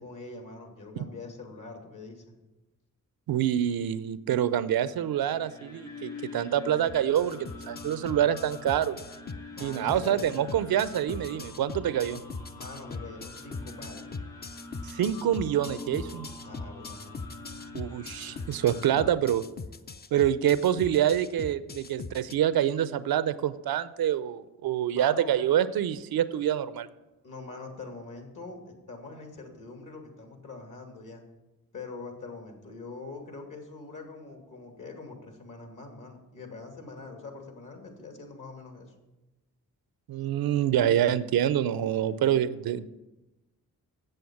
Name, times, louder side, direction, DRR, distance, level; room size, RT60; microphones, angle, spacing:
voice 1, 0.0-2.4 9.5-10.2 12.5-14.3 16.4-17.3 24.9-25.4 27.2-31.2 31.7-38.9, left 3 dB, 55° left, 4 dB, 2.6 m, -44 dB
voice 2, 3.3-9.0 9.6-12.2 14.8-16.3 17.7-19.4 20.1-26.9 40.1-42.9, right 10 dB, 75° right, 15 dB, 0.6 m, -26 dB
sound 1, 4.9-19.1, left 2 dB, 80° left, 4.0 m, -46 dB
sound 2, 6.8-22.3, left 4 dB, 25° left, 0.6 m, -40 dB
7.9 x 7.7 x 7.1 m, 1.0 s
supercardioid pair, 50°, 36 cm